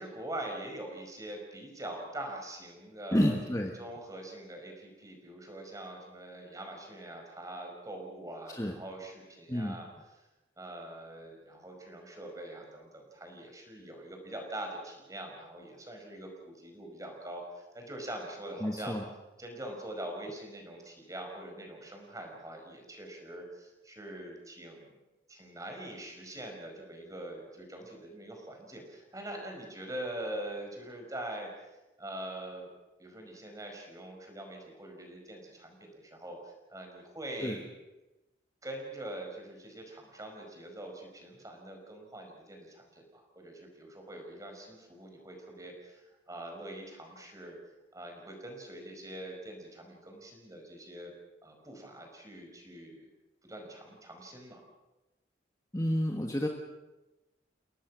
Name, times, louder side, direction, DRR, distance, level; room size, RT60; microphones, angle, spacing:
voice 1, 0.0-3.4 3.8-9.9 10.6-19.0 19.4-25.0 25.3-31.5 32.0-32.7 33.0-37.7 38.6-47.6 47.9-51.1 51.4-53.1 53.4-54.6, right 1 dB, 20° right, 2 dB, 5.0 m, -43 dB
voice 2, 3.1-3.8 8.5-8.8 9.5-9.8 18.6-19.0 37.4-37.6 55.7-56.5, equal, 15° left, 2 dB, 1.4 m, -30 dB
30.0 x 18.0 x 6.3 m, 1.0 s
head